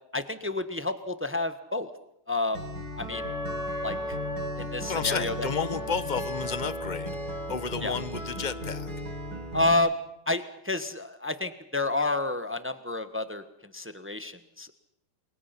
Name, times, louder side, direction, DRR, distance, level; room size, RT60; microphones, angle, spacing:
voice 1, 0.1-1.9 2.3-2.6 3.0-3.3 3.8-4.2 4.6-5.5 7.8-7.9 9.5-9.9 10.3-13.4 13.7-14.7, left 2 dB, 10° right, 10 dB, 0.7 m, -29 dB
Acoustic guitar, 2.5-9.7, left 1 dB, 45° right, 3.9 m, -37 dB
Wind instrument woodwind instrument, 3.1-7.6, equal, 10° left, 2.8 m, -37 dB
voice 2, 4.9-7.2 7.5-8.9, left 5 dB, 45° left, 13 dB, 0.5 m, -31 dB
29.5 x 23.0 x 5.9 m, 0.74 s
omnidirectional pair, 2.3 m